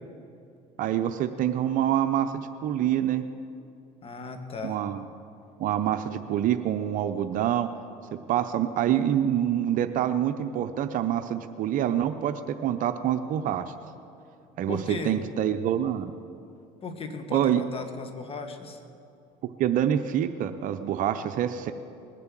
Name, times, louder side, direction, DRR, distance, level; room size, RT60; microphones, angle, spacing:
voice 1, 0.8-3.2 4.6-5.0 5.6-7.7 8.1-13.7 14.6-16.1 17.3-17.6 19.6-21.7, right 10 dB, 55° right, 8 dB, 0.7 m, -26 dB
voice 2, 4.0-4.8 14.7-15.2 16.8-18.8, left 4 dB, 35° left, 5 dB, 1.9 m, -36 dB
20.5 x 7.6 x 7.5 m, 2.6 s
supercardioid pair, 95°, 16 cm